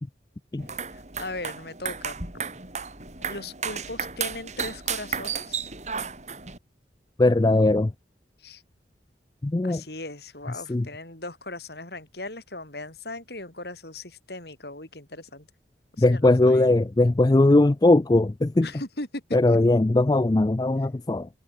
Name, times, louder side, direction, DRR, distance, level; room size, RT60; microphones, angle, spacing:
sound 1, 0.6-6.6, right 6 dB, 40° right, 5.9 m, -33 dB
voice 1, 0.9-2.2 3.2-5.7 8.4-8.6 9.6-15.5 15.9-16.7 18.6-19.6, left 2 dB, 60° left, 5.5 m, -38 dB
voice 2, 7.2-7.9 9.4-9.8 10.7-10.9 16.0-18.7 19.3-21.3, left 2 dB, 20° left, 0.4 m, -20 dB
head